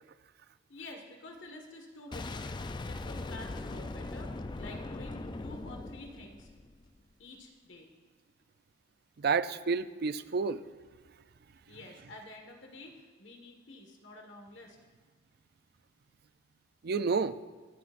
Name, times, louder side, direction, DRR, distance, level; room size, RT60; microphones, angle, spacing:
voice 1, 0.7-6.5 7.2-7.9 11.7-14.8, left 2 dB, 70° left, 2 dB, 1.6 m, -49 dB
Boom, 2.1-7.0, left 2 dB, 25° left, 0.4 m, -40 dB
voice 2, 9.2-10.6 16.8-17.4, right 5 dB, 55° right, 13 dB, 0.4 m, -30 dB
25.0 x 9.8 x 2.6 m, 1.5 s
head